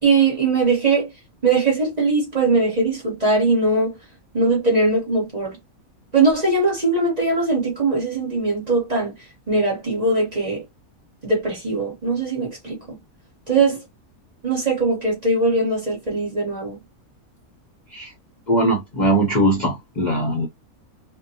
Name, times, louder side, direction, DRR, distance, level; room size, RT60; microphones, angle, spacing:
voice 1, 0.0-1.1 1.4-3.9 4.3-5.6 6.1-9.1 9.5-10.6 11.2-13.0 13.5-13.8 14.4-16.8, right 3 dB, 30° right, 1.1 m, -20 dB
voice 2, 18.5-20.5, right 1 dB, 40° left, 0.8 m, -20 dB
2.6 x 2.1 x 2.7 m
omnidirectional pair, 1.5 m